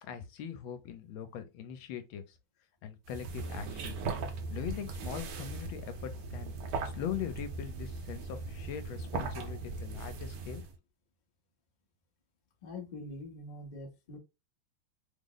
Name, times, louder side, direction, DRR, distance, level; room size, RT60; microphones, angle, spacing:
voice 1, 0.0-2.2 2.8-4.0 4.5-6.5 6.9-10.6, left 9 dB, 80° left, 1.4 m, -41 dB
sound 1, 3.1-10.8, right 3 dB, 70° right, 1.1 m, -39 dB
voice 2, 12.6-14.2, left 2 dB, 45° left, 0.5 m, -44 dB
3.3 x 2.0 x 3.7 m
omnidirectional pair, 2.2 m